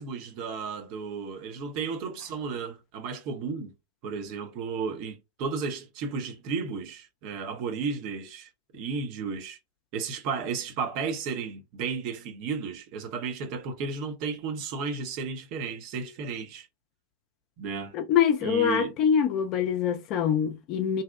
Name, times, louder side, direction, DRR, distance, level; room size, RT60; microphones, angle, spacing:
voice 1, 0.0-3.7 4.0-9.6 9.9-16.7 17.6-17.9 18.4-18.9, right 5 dB, 45° right, 0.5 m, -33 dB
voice 2, 17.9-21.0, left 8 dB, 40° left, 0.5 m, -24 dB
2.6 x 2.1 x 2.2 m
figure-of-eight pair, 90°, 0 cm